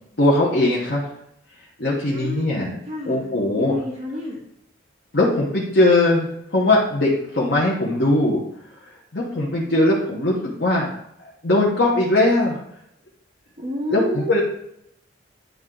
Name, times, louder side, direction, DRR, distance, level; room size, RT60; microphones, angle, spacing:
voice 1, 0.2-1.0 1.8-2.7 3.1-3.8 5.1-8.4 9.1-10.9 11.4-12.6 13.9-14.4, left 2 dB, 55° left, -4 dB, 1.1 m, -20 dB
voice 2, 2.1-3.3 3.5-4.4 9.6-10.2 13.6-14.3, left 1 dB, 35° right, -4 dB, 1.7 m, -30 dB
9.3 x 3.5 x 3.8 m, 0.77 s
head